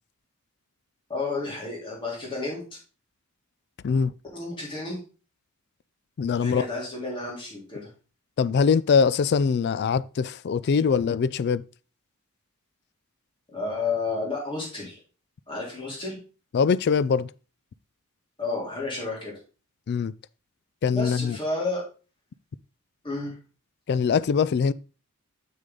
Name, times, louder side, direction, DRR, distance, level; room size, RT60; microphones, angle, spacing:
voice 1, 1.1-2.6 4.3-5.0 6.4-7.9 13.5-15.0 15.5-16.2 18.4-19.3 20.9-21.8 23.0-23.3, left 3 dB, 20° left, 3.3 m, -31 dB
voice 2, 6.2-6.7 8.4-11.6 16.5-17.3 19.9-20.1 20.8-21.4 23.9-24.7, left 6 dB, 50° left, 0.3 m, -22 dB
7.0 x 6.5 x 3.8 m
head